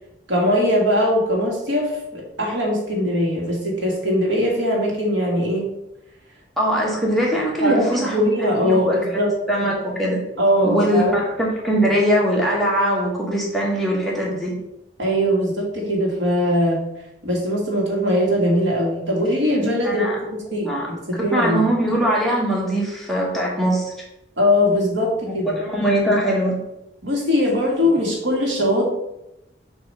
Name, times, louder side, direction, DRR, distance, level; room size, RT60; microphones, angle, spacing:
voice 1, 0.3-5.7 7.6-9.3 10.4-11.1 15.0-16.8 17.2-21.6 24.4-25.6 27.0-28.9, equal, 85° right, -1 dB, 1.8 m, -21 dB
voice 2, 6.6-9.2 9.5-10.2 10.6-14.5 19.8-20.2 20.6-20.9 21.3-23.9 25.3-26.6, equal, ahead, -4 dB, 1.2 m, -21 dB
6.6 x 3.0 x 5.3 m, 0.88 s
head